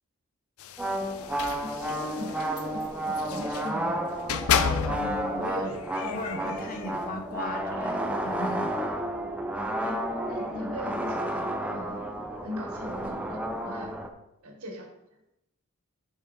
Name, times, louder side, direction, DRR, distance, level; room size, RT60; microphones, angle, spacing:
sound 1, 0.6-3.7 4.2-5.3 5.7-7.1, left 7 dB, 70° left, 0.4 m, -32 dB
sound 2, 0.8-14.1, right 1 dB, 5° right, 0.5 m, -31 dB
voice 1, 1.5-4.0 9.8-12.2 12.4-13.9 14.4-14.9, left 1 dB, 80° right, 2 dB, 1.5 m, -40 dB
voice 2, 4.9-8.7, left 1 dB, 40° left, 4 dB, 1.0 m, -36 dB
6.4 x 6.2 x 4.1 m, 0.88 s
head